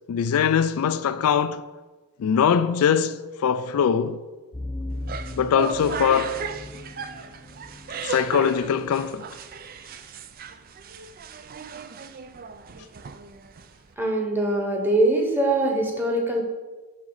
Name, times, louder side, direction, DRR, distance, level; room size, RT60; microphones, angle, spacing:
voice 1, 0.1-1.6 2.2-4.2 5.4-6.4 8.0-9.3, left 7 dB, 75° left, 0.3 m, -22 dB
sound 1, 4.5-9.3, left 1 dB, 10° left, 0.7 m, -38 dB
sound 2, 4.9-13.9, right 5 dB, 40° right, 0.4 m, -36 dB
voice 2, 14.0-16.4, right 1 dB, 10° right, 1.1 m, -22 dB
7.6 x 6.2 x 4.0 m
head